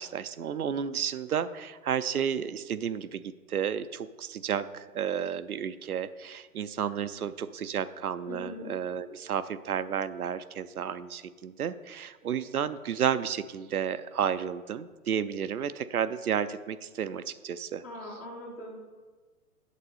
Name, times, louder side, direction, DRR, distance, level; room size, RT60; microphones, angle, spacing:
voice 1, 0.0-17.8, right 8 dB, 75° right, 13 dB, 0.6 m, -32 dB
voice 2, 8.3-8.7 17.8-18.7, left 1 dB, 10° left, 0 dB, 0.5 m, -41 dB
8.3 x 7.3 x 4.1 m, 1.4 s
figure-of-eight pair, 120°, 45 cm